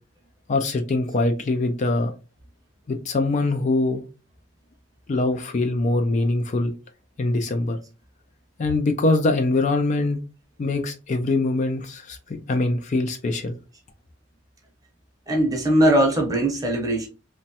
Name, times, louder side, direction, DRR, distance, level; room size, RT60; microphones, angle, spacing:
voice 1, 0.5-2.1 2.9-4.0 5.1-6.7 7.2-7.8 8.6-10.2 10.6-13.6, left 2 dB, 40° left, 0.4 m, -23 dB
voice 2, 15.3-17.1, right 1 dB, 20° right, 0.7 m, -20 dB
3.0 x 2.2 x 2.8 m
head